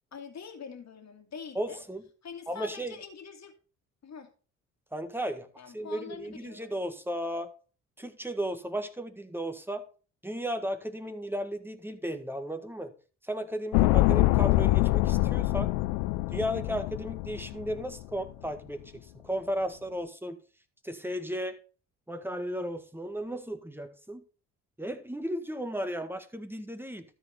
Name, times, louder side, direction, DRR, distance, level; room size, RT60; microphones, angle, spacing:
voice 1, 0.1-1.8 2.2-3.5 4.0-4.3 5.6-6.7, left 6 dB, 50° left, 2.3 m, -44 dB
voice 2, 1.5-2.0 2.5-2.9 4.9-5.5 5.7-7.5 8.0-9.8 10.2-12.9 13.2-15.7 16.3-20.4 20.8-21.6 22.1-24.2 24.8-27.0, equal, 5° right, 1.7 m, -35 dB
sound 1, 13.7-18.0 18.3-18.4, left 18 dB, 85° left, 0.5 m, -25 dB
13.0 x 4.6 x 5.6 m
supercardioid pair, 60°, 35 cm